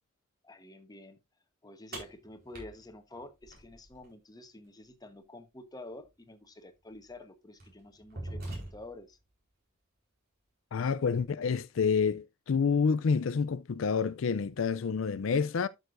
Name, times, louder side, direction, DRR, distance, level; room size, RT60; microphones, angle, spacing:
voice 1, 0.4-1.2 1.6-9.2, left 2 dB, 20° left, 1.1 m, -49 dB
sound 1, 1.9-4.1 6.0-6.1 6.9-7.1 7.6-9.1, right 1 dB, 50° right, 4.3 m, -43 dB
voice 2, 10.7-15.7, left 5 dB, 75° left, 0.4 m, -28 dB
11.5 x 6.5 x 2.5 m
head